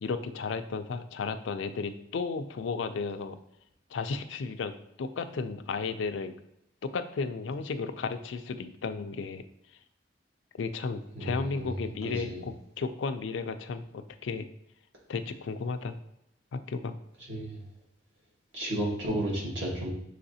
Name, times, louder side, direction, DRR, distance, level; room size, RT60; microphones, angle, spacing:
voice 1, 0.0-3.4 3.9-6.4 6.8-9.4 9.7-9.8 10.6-14.5 15.1-16.0 16.5-16.9, left 4 dB, 75° left, 9 dB, 0.4 m, -34 dB
voice 2, 11.1-11.7 12.0-12.4 17.3-17.6 18.5-19.9, right 1 dB, 85° right, -4 dB, 1.6 m, -32 dB
5.7 x 3.3 x 2.7 m, 0.80 s
head